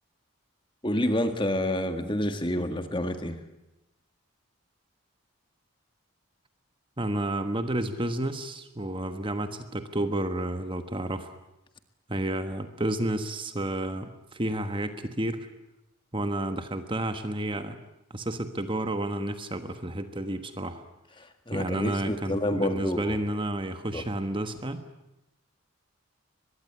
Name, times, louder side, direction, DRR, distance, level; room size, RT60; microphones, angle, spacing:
voice 1, 0.8-3.4 21.2-23.2 23.9-24.0, left 1 dB, 20° left, 8 dB, 1.8 m, -28 dB
voice 2, 7.0-11.4 12.1-15.5 16.1-17.8 18.1-20.8 21.5-24.8, right 1 dB, 25° right, 8 dB, 1.3 m, -31 dB
23.5 x 21.0 x 9.6 m, 0.91 s
head